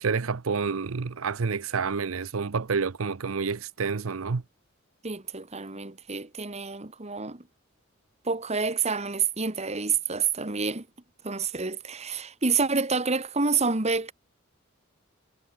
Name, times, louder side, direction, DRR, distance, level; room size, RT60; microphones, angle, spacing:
voice 1, 0.0-4.4, right 5 dB, 85° right, 0.7 m, -28 dB
voice 2, 5.0-7.5 8.2-10.9 11.2-14.1, right 5 dB, 30° right, 1.8 m, -28 dB
head